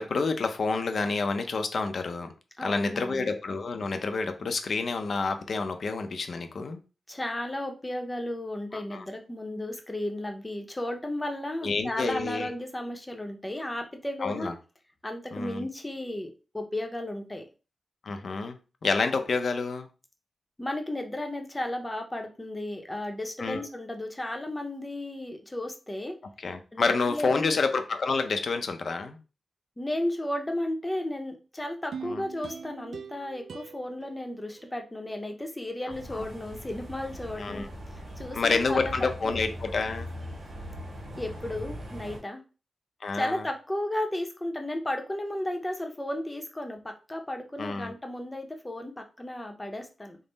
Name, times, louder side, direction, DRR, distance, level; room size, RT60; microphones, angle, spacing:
voice 1, 0.0-2.3 2.6-6.8 8.7-9.0 11.6-12.5 14.2-14.5 15.3-15.6 18.0-19.9 23.4-23.7 26.4-29.2 32.0-32.2 36.1-36.2 37.4-37.7 38.3-40.1 43.0-43.4 47.6-47.9, left 4 dB, 60° left, 7 dB, 0.5 m, -29 dB
voice 2, 2.6-3.3 7.1-14.5 15.0-17.4 20.6-26.2 26.7-27.6 29.8-37.6 37.9-38.9 39.3-39.4 41.2-42.4 43.1-50.2, left 1 dB, 15° left, 4 dB, 0.7 m, -34 dB
sound 1, 31.9-35.2 35.7-35.8, right 6 dB, 80° right, 0.3 m, -43 dB
sound 2, 35.9-42.2, equal, 50° right, 1.5 m, -40 dB
3.6 x 2.0 x 3.9 m, 0.33 s
wide cardioid pair, 105°, 0 cm